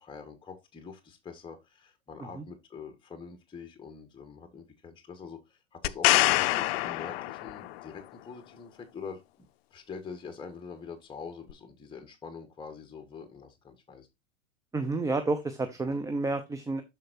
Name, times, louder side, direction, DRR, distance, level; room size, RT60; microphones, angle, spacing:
voice 1, 0.0-14.1, left 5 dB, 15° left, 1.4 m, -45 dB
sound 1, 5.8-7.8 11.5-11.6, left 17 dB, 55° left, 0.6 m, -25 dB
voice 2, 14.7-16.8, right 3 dB, 10° right, 0.6 m, -30 dB
12.5 x 4.6 x 2.6 m
hypercardioid pair, 105°, 38 cm